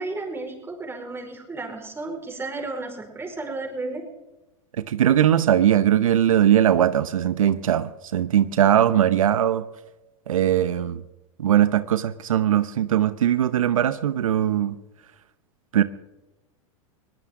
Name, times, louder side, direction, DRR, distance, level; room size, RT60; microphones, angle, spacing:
voice 1, 0.0-4.1, right 3 dB, 15° right, 2 dB, 4.7 m, -33 dB
voice 2, 4.9-9.6 10.3-11.0 11.4-14.7 15.7-15.8, right 10 dB, 85° right, 14 dB, 0.8 m, -20 dB
21.0 x 18.0 x 3.7 m, 1.0 s
hypercardioid pair, 110°, 17 cm